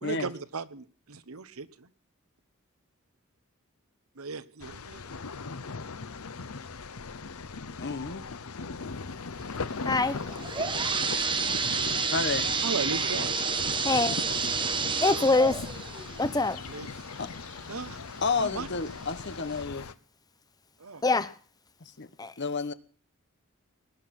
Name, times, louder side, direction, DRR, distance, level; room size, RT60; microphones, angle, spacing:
voice 1, 0.0-1.9 4.1-5.1 12.6-13.4 16.7-16.9 17.7-18.0 18.4-18.7 20.8-21.0, right 4 dB, 80° right, 1.0 m, -36 dB
sound 1, 4.6-19.9, left 4 dB, 90° left, 0.9 m, -39 dB
voice 2, 7.8-8.3 12.1-12.5 17.2-17.3 18.2-19.9 21.8-22.1 22.4-22.7, left 4 dB, 55° left, 1.2 m, -31 dB
voice 3, 9.8-10.2 13.8-14.2 15.0-15.6 16.2-16.6 21.0-21.3 22.2-22.3, left 3 dB, 20° left, 0.9 m, -24 dB
sound 2, 10.1-17.8 18.2-18.3 19.1-19.2 19.6-19.7, right 5 dB, 25° right, 1.2 m, -30 dB
19.5 x 9.9 x 6.0 m
head